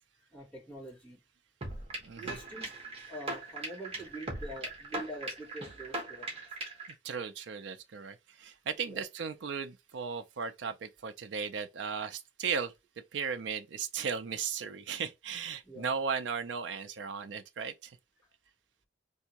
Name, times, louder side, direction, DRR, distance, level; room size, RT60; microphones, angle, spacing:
voice 1, 0.2-1.2 2.1-2.7 3.1-6.4 8.9-9.0 15.6-15.9, right 1 dB, 10° left, 1.9 m, -45 dB
sound 1, 1.6-6.9, right 2 dB, 35° right, 1.2 m, -39 dB
voice 2, 2.0-2.4 7.0-12.7 13.1-18.0, right 6 dB, 75° right, 0.4 m, -36 dB
3.4 x 2.7 x 2.9 m
head